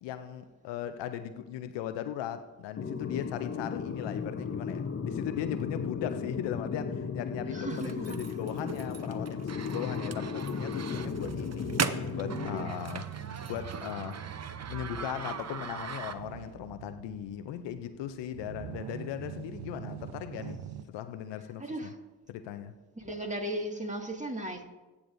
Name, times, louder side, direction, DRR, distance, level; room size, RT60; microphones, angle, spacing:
voice 1, 0.0-14.2 14.7-21.9 22.3-22.7, left 10 dB, 90° left, 0.5 m, -38 dB
sound 1, 2.8-12.7, left 5 dB, 35° left, 0.7 m, -35 dB
voice 2, 7.5-8.2 21.6-22.0 22.9-24.6, right 1 dB, 15° right, 1.8 m, -36 dB
sound 2, 7.7-16.5, right 6 dB, 40° right, 0.7 m, -39 dB
sound 3, 8.5-20.8, right 9 dB, 80° right, 0.6 m, -44 dB
17.0 x 7.2 x 2.5 m
supercardioid pair, 40°, 42 cm